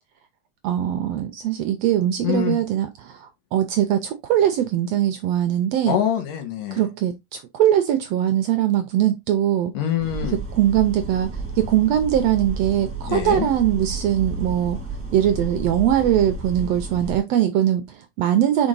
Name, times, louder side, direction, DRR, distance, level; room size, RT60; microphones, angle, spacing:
voice 1, 0.6-6.0 6.7-9.7 10.6-11.3 11.6-14.8 15.1-18.7, right 11 dB, 75° right, 1.5 m, -21 dB
voice 2, 2.2-2.6 5.9-6.8 9.7-10.4 13.1-13.5, left 9 dB, 85° left, 3.1 m, -24 dB
sound 1, 10.0-17.2, right 3 dB, 5° right, 1.8 m, -31 dB
5.2 x 4.9 x 3.9 m
omnidirectional pair, 3.6 m